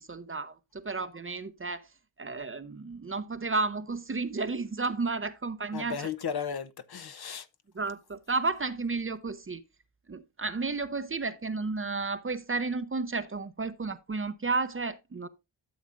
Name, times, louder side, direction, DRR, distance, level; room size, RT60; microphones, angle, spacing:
voice 1, 0.0-1.9 2.2-6.1 7.7-9.6 10.1-15.3, right 3 dB, 25° right, 0.7 m, -32 dB
voice 2, 5.7-7.5, left 7 dB, 55° left, 0.8 m, -35 dB
12.5 x 7.1 x 2.5 m
cardioid pair, 85°, 47 cm